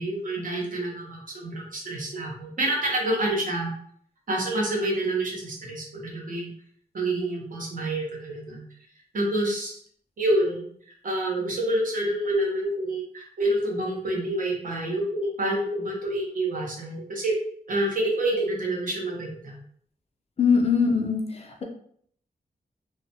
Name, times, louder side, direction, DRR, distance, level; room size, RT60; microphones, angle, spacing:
voice 1, 0.0-3.7 4.3-6.5 6.9-8.6 9.1-9.8 10.2-10.7 11.0-17.3 17.7-19.6, right 1 dB, 60° right, -2 dB, 0.8 m, -27 dB
voice 2, 20.4-21.6, left 5 dB, 40° left, 2 dB, 0.4 m, -22 dB
2.3 x 2.2 x 2.7 m, 0.63 s
wide cardioid pair, 155°, 16 cm